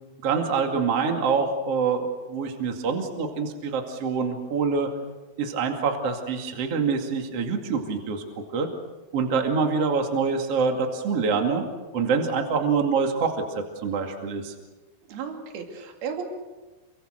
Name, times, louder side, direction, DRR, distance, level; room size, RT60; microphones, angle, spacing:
voice 1, 0.2-4.9 5.4-8.2 8.5-8.7 9.1-11.6 11.9-14.5, right 5 dB, 45° right, 3 dB, 3.0 m, -25 dB
voice 2, 15.1-16.2, right 7 dB, 70° right, 3 dB, 4.6 m, -34 dB
28.0 x 24.5 x 6.6 m, 1.2 s
omnidirectional pair, 4.6 m